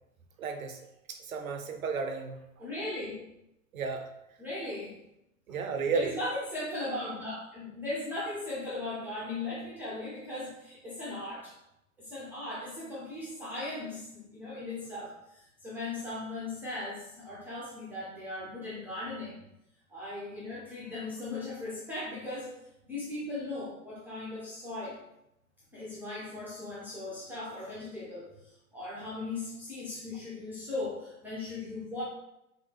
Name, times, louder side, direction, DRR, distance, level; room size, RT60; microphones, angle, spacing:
voice 1, 0.4-0.8 1.1-2.7 3.7-4.1 5.5-6.1, right 5 dB, 65° right, 6 dB, 0.6 m, -33 dB
voice 2, 2.6-3.2 4.4-5.0 5.5-5.6 5.9-11.5 12.0-19.4 19.9-22.5 22.8-25.0 25.7-32.0, left 2 dB, 5° right, -9 dB, 0.6 m, -38 dB
3.3 x 2.7 x 3.2 m, 0.84 s
figure-of-eight pair, 100°, 44 cm